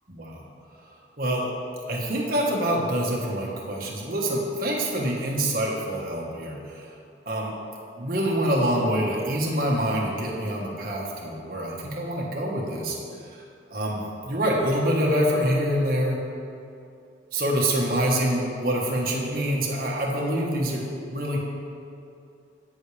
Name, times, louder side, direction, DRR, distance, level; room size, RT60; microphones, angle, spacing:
voice 1, 0.1-0.4 1.2-1.5 1.9-6.8 7.2-7.5 8.0-13.0 13.3-13.4 13.7-16.2 17.3-21.4, equal, 50° right, -3 dB, 1.6 m, -26 dB
17.0 x 6.3 x 3.5 m, 2.6 s
head